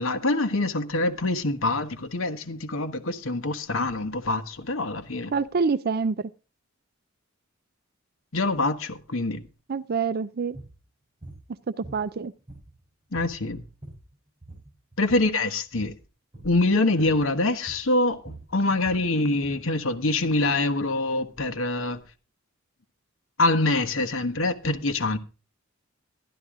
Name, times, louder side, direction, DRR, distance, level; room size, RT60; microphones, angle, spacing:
voice 1, 0.0-5.3 8.3-9.4 13.1-13.6 15.0-15.9 16.4-22.0 23.4-25.2, left 2 dB, 70° left, 1.2 m, -25 dB
voice 2, 5.3-6.3 9.7-10.6 11.8-12.3, right 5 dB, 50° right, 0.5 m, -26 dB
sound 1, 10.5-10.8 11.2-11.4 11.8-12.8 13.1-13.4 13.7-14.1 14.4-15.3 15.7-16.0 16.3-16.6 17.0-17.3 17.7-19.7, right 2 dB, 25° right, 7.8 m, -44 dB
12.5 x 11.5 x 3.7 m
head